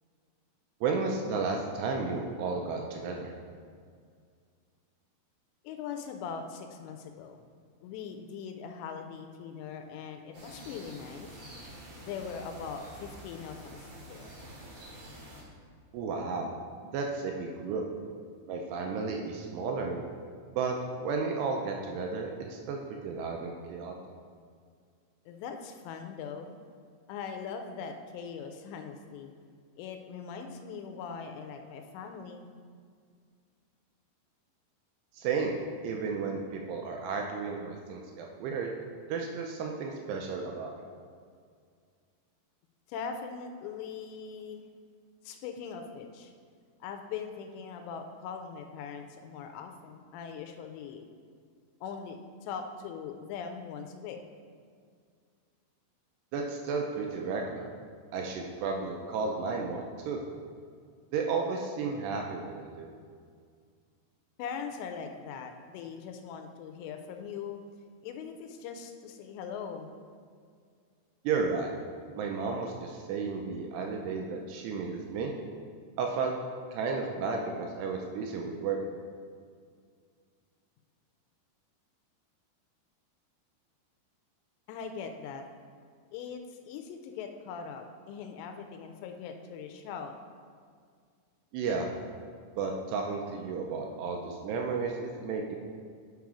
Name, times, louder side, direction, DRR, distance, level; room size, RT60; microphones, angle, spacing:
voice 1, 0.8-3.3 15.9-16.5 16.8-17.8 18.5-20.0 20.5-20.8 21.0-22.8 23.0-23.9 35.1-38.7 39.1-40.7 56.3-57.7 58.1-60.2 61.1-62.9 71.2-71.7 72.1-75.3 76.0-76.3 76.7-78.8 91.5-91.9 92.6-95.6, right 4 dB, 80° right, 1 dB, 2.5 m, -33 dB
voice 2, 5.6-7.4 7.8-11.3 12.0-14.4 25.3-26.6 27.1-29.3 29.8-32.5 42.9-44.6 45.2-46.3 46.8-51.0 51.8-54.2 64.4-67.6 68.0-69.9 84.7-85.5 86.1-90.1, left 6 dB, 85° left, 5 dB, 2.7 m, -41 dB
sound 1, 10.3-15.4, right 1 dB, 40° right, 2.6 m, -48 dB
9.5 x 4.0 x 4.8 m, 2.1 s
omnidirectional pair, 5.2 m